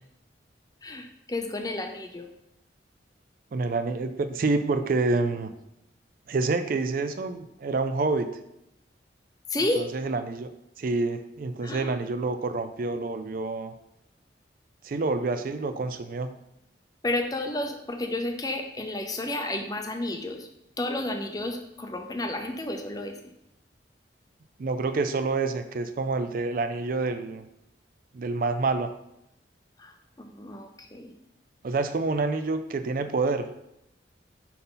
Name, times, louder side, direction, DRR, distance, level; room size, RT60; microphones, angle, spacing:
voice 1, 0.8-2.3 9.5-9.8 11.6-11.9 17.0-20.5 20.8-23.2 29.8-31.1, left 2 dB, 20° left, 5 dB, 0.6 m, -31 dB
voice 2, 3.5-5.5 6.3-8.4 9.8-10.5 10.8-13.7 14.8-16.3 24.6-27.4 28.1-28.9 31.6-33.5, right 3 dB, 50° right, 9 dB, 0.4 m, -27 dB
5.9 x 5.4 x 3.9 m, 0.82 s
head